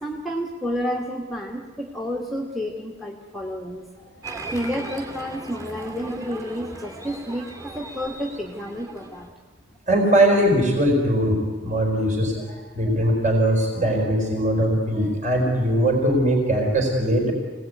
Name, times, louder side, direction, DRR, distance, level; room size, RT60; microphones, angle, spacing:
voice 1, 0.0-3.9 4.5-9.3, equal, ahead, 2 dB, 1.6 m, -30 dB
Applause, 4.2-9.3, right 2 dB, 15° right, 2.7 m, -38 dB
voice 2, 9.9-17.3, right 1 dB, 40° right, 0 dB, 4.8 m, -21 dB
25.0 x 18.0 x 9.6 m, 1.4 s
head